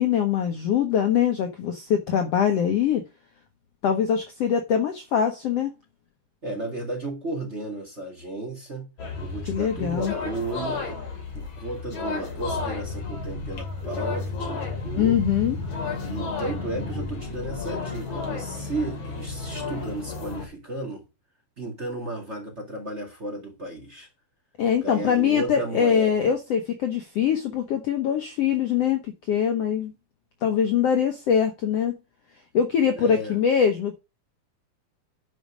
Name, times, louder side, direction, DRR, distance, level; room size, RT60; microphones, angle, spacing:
voice 1, 0.0-3.0 3.8-5.7 9.5-10.1 15.0-15.6 24.6-29.9 30.4-32.0 32.5-34.0, left 8 dB, 85° left, 1.3 m, -23 dB
voice 2, 6.4-8.9 9.2-11.0 11.3-15.2 16.0-21.1 21.6-24.1 24.7-26.3 33.0-33.4, right 2 dB, 25° right, 1.6 m, -34 dB
sound 1, 9.0-20.5, left 3 dB, 45° left, 3.6 m, -32 dB
10.5 x 5.2 x 4.9 m
omnidirectional pair, 4.2 m